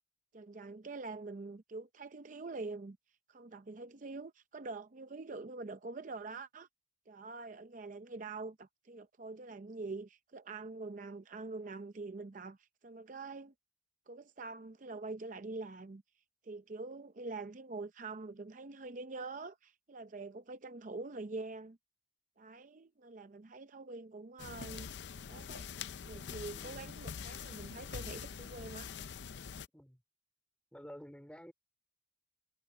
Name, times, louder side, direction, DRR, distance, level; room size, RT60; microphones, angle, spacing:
voice 1, 0.3-3.0 3.3-6.7 7.1-13.5 14.1-16.0 16.4-21.8 22.4-24.9 25.3-25.7 26.0-28.9, right 3 dB, 45° right, 0.6 m, -45 dB
sound 1, 24.4-29.7, left 6 dB, 75° left, 0.5 m, -44 dB
voice 2, 26.5-26.8 29.7-30.0 30.7-31.5, equal, 5° left, 3.3 m, -51 dB
head